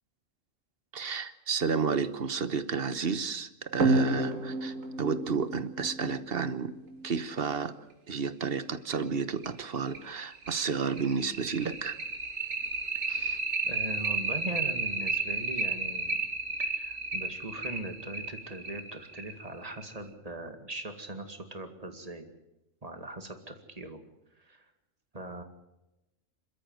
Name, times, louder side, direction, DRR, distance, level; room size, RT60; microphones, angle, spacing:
voice 1, 0.9-6.7 7.0-7.8 8.1-12.0 13.1-13.4, right 5 dB, 50° right, 13 dB, 1.2 m, -31 dB
sound 1, 3.8-7.0 8.4-8.5 8.9-9.0 9.4-9.5 9.9-20.0, right 3 dB, 70° right, 2.5 m, -31 dB
voice 2, 13.6-16.2 16.6-22.3 22.8-24.0 24.4-24.7 25.1-25.4, right 2 dB, 30° right, 7 dB, 2.2 m, -40 dB
26.0 x 13.5 x 7.9 m, 0.94 s
omnidirectional pair, 1.4 m